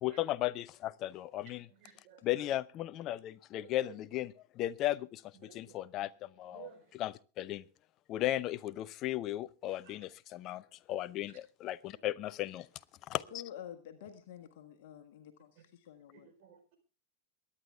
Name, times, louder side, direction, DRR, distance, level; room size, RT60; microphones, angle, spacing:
voice 1, 0.0-1.7 2.2-7.7 8.1-12.7 13.1-13.4, left 14 dB, 35° left, 18 dB, 0.6 m, -36 dB
voice 2, 1.8-2.2 5.5-5.7 6.5-6.8 9.9-10.0 16.1-16.7, right 10 dB, 45° right, 6 dB, 4.4 m, -54 dB
voice 3, 13.3-16.3, left 9 dB, 50° left, 6 dB, 1.6 m, -49 dB
23.0 x 9.9 x 3.5 m, 0.35 s
figure-of-eight pair, 90°, 0 cm